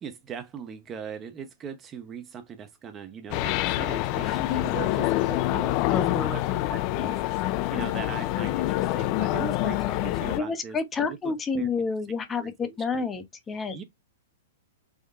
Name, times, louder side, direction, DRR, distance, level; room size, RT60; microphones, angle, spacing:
voice 1, 0.0-11.7 12.4-13.0 13.7-13.8, right 7 dB, 25° right, 0.6 m, -40 dB
sound 1, 3.3-10.4, left 16 dB, 45° left, 0.3 m, -26 dB
voice 2, 5.9-6.4 10.4-13.8, left 4 dB, 20° left, 0.7 m, -29 dB
3.6 x 3.1 x 2.4 m
hypercardioid pair, 120°, 0 cm